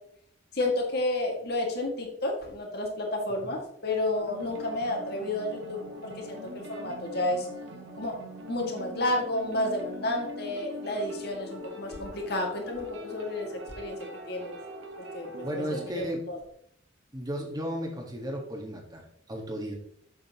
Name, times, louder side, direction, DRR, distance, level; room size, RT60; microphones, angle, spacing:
voice 1, 0.5-7.5 8.0-8.2 8.5-13.5 13.8-14.6 15.1-16.4, left 1 dB, 60° left, 1 dB, 2.1 m, -31 dB
sound 1, 4.1-15.9, equal, 85° right, 1.4 m, -43 dB
voice 2, 15.4-16.2 17.1-19.7, equal, 20° right, 0 dB, 1.6 m, -34 dB
7.9 x 7.5 x 3.0 m, 0.67 s
head